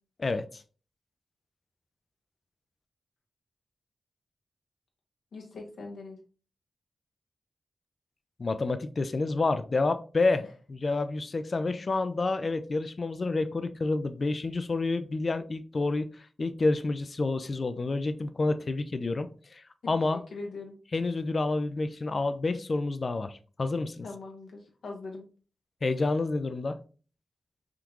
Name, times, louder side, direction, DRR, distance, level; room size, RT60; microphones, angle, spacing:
voice 1, 0.2-0.6 8.4-20.2 20.9-24.1 25.8-26.8, left 3 dB, 55° left, 10 dB, 0.4 m, -29 dB
voice 2, 5.3-6.2 20.1-20.8 24.0-25.2, left 3 dB, 80° left, 1 dB, 0.9 m, -41 dB
3.6 x 2.4 x 2.9 m, 0.38 s
cardioid pair, 45°, 0 cm